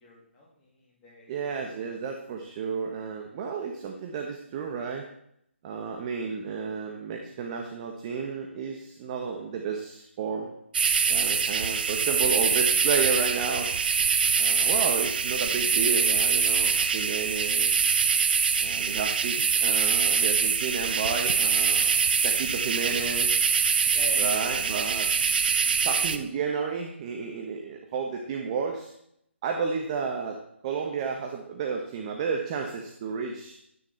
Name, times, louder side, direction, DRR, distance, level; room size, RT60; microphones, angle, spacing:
voice 1, 0.0-1.8 23.9-24.4, left 2 dB, 15° left, -5 dB, 2.7 m, -43 dB
voice 2, 1.3-5.0 5.6-10.5 11.1-13.7 14.3-17.9 18.6-21.9 22.2-23.5 24.2-25.1 25.8-28.9 29.4-33.6, right 5 dB, 30° right, 3 dB, 1.2 m, -32 dB
sound 1, 10.7-26.2, right 6 dB, 45° right, 0.9 m, -24 dB
12.0 x 9.5 x 4.3 m, 0.74 s
figure-of-eight pair, 145°, 7 cm